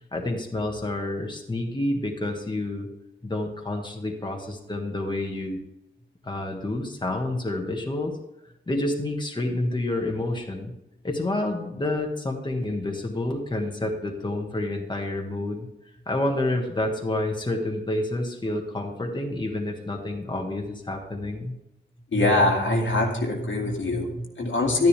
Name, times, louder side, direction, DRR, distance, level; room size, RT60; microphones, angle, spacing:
voice 1, 0.1-2.9 3.2-5.6 6.2-8.2 8.7-10.7 11.0-15.7 16.1-21.5, left 1 dB, 25° left, 1 dB, 1.5 m, -29 dB
voice 2, 22.1-24.9, left 2 dB, 85° left, -1 dB, 2.3 m, -23 dB
12.0 x 10.0 x 3.4 m, 0.91 s
wide cardioid pair, 115°, 19 cm